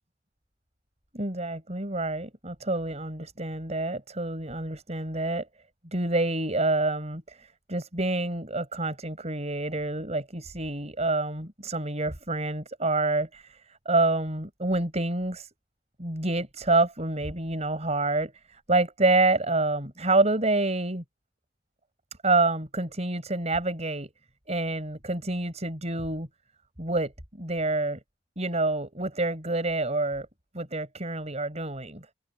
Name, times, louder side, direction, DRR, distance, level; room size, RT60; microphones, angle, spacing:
voice 1, 1.1-5.5 5.9-13.6 13.9-15.5 16.0-21.0 22.2-24.1 24.5-26.3 26.8-27.1 27.4-28.0 28.4-30.3 30.5-32.0, right 2 dB, 35° right, 5.4 m, -27 dB
head